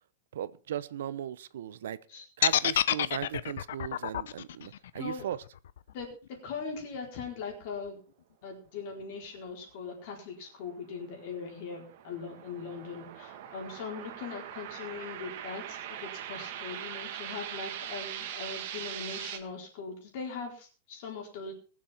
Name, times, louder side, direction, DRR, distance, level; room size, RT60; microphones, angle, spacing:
voice 1, 0.3-2.0 2.4-5.4, right 10 dB, 85° right, 0.8 m, -37 dB
sound 1, 2.4-6.5, left 11 dB, 75° left, 0.6 m, -29 dB
voice 2, 4.6-5.2 5.9-8.0 8.4-21.5, left 5 dB, 40° left, 4.4 m, -40 dB
sound 2, 11.0-19.4, right 10 dB, 45° right, 1.6 m, -41 dB
20.5 x 7.5 x 4.4 m
supercardioid pair, 180°, 0 cm